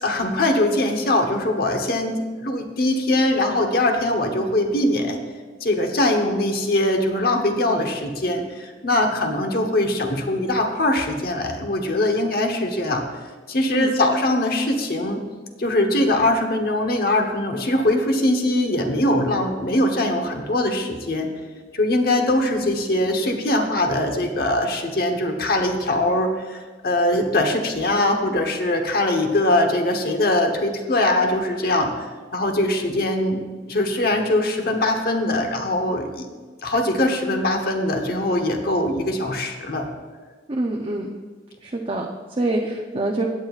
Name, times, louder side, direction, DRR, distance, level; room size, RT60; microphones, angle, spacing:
voice 1, 0.0-5.2 5.6-13.0 13.5-15.2 15.6-21.3 21.7-33.4 33.7-36.3 36.6-39.9, left 1 dB, 55° left, 3 dB, 1.1 m, -22 dB
voice 2, 40.5-41.1 41.6-43.3, right 2 dB, 30° right, 0 dB, 0.6 m, -25 dB
16.0 x 9.0 x 2.4 m, 1.4 s
head